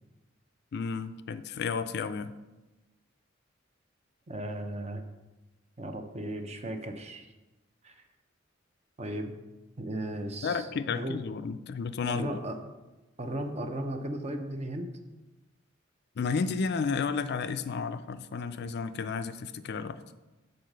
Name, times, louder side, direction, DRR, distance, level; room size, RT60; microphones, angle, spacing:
voice 1, 0.7-2.3 10.4-12.4 16.2-20.0, left 5 dB, 55° left, 11 dB, 0.4 m, -32 dB
voice 2, 4.3-5.0 5.8-7.3 7.8-7.9 9.0-9.4 9.8-11.2 12.1-12.6 13.2-14.9, right 1 dB, 35° right, 6 dB, 0.7 m, -36 dB
7.6 x 4.0 x 6.6 m, 1.1 s
head